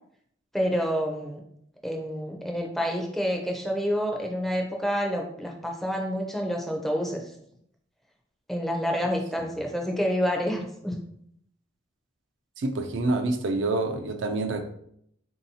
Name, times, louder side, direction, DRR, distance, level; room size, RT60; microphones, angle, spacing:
voice 1, 0.5-1.4 1.8-7.3 8.5-11.0, equal, ahead, 1 dB, 0.4 m, -28 dB
voice 2, 12.6-14.6, right 2 dB, 65° right, 6 dB, 0.4 m, -27 dB
3.9 x 2.7 x 2.7 m, 0.70 s
head